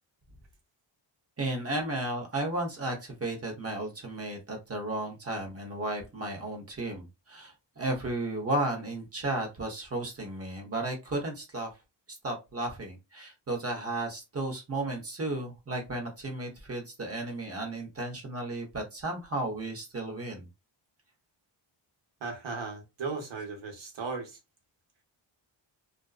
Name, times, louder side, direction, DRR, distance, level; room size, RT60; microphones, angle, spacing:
voice 1, 1.4-11.7 12.2-20.5, right 2 dB, 30° right, 0.9 m, -34 dB
voice 2, 22.2-24.4, right 4 dB, 65° right, 1.1 m, -36 dB
2.5 x 2.2 x 2.3 m
wide cardioid pair, 125°, 48 cm